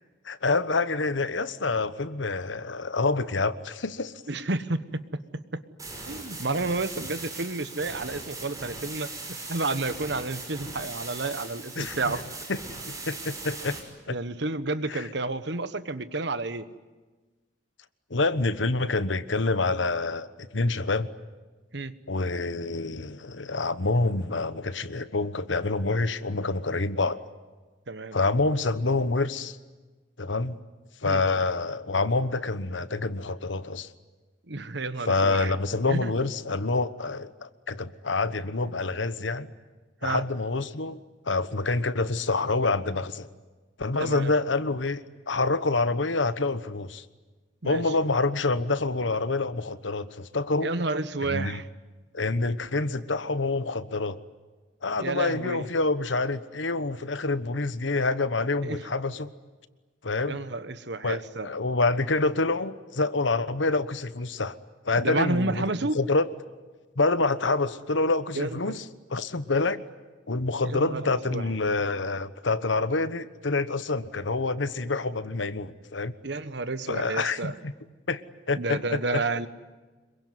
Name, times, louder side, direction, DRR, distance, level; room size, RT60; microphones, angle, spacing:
voice 1, 0.2-4.1 11.8-12.0 12.5-12.6 13.0-13.8 14.1-14.2 14.9-15.1 18.1-21.1 22.1-27.2 28.1-29.6 30.2-30.6 31.0-33.9 35.0-39.5 40.0-41.0 41.3-43.3 43.8-47.0 47.6-50.7 51.3-51.6 52.1-54.2 54.8-59.3 60.0-60.4 61.0-64.6 64.8-65.7 65.9-66.3 67.0-68.8 69.1-69.8 70.3-76.1 76.9-77.7 78.1-78.2 78.5-78.8 79.1-79.2, left 3 dB, 75° left, 13 dB, 1.2 m, -27 dB
voice 2, 4.3-5.0 5.3-5.6 6.1-9.1 9.5-12.3 14.1-16.6 21.7-21.9 27.9-28.2 31.0-31.2 34.5-35.5 35.9-36.1 40.0-40.2 44.0-44.3 47.6-47.8 50.6-51.7 55.0-55.7 58.6-58.8 60.3-61.5 65.0-66.0 68.3-68.8 70.6-71.4 76.2-77.5 78.5-79.5, right 3 dB, 60° right, 13 dB, 1.2 m, -30 dB
sound 1, 5.8-13.8, right 3 dB, 20° right, 6.1 m, -39 dB
26.5 x 23.0 x 9.6 m, 1.3 s
head